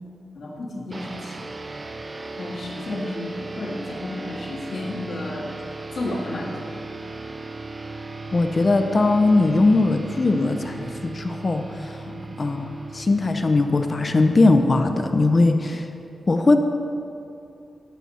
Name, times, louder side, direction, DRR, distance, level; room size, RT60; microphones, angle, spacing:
voice 1, 0.3-1.5 2.4-5.6 5.9-6.7 12.1-12.4, left 2 dB, 70° left, -3 dB, 1.9 m, -32 dB
sound 1, 0.9-15.7, right 3 dB, 30° right, 0.5 m, -37 dB
voice 2, 8.3-11.6 12.4-12.7 12.9-15.8 16.3-16.6, left 2 dB, 35° left, 6 dB, 0.6 m, -19 dB
15.0 x 6.1 x 4.2 m, 2.6 s
wide cardioid pair, 125°, 0 cm